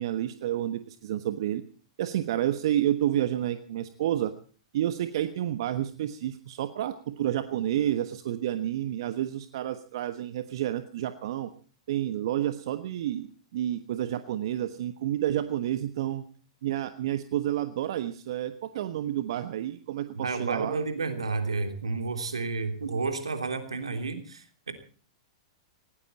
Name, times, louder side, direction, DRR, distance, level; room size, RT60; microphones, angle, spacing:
voice 1, 0.0-1.6 2.0-4.3 4.7-11.5 11.9-13.3 13.5-16.2 16.6-20.8, right 12 dB, 60° right, 10 dB, 1.3 m, -30 dB
voice 2, 20.1-24.7, right 4 dB, 85° right, 7 dB, 3.2 m, -31 dB
19.0 x 18.0 x 4.2 m, 0.40 s
hypercardioid pair, 110°, 3 cm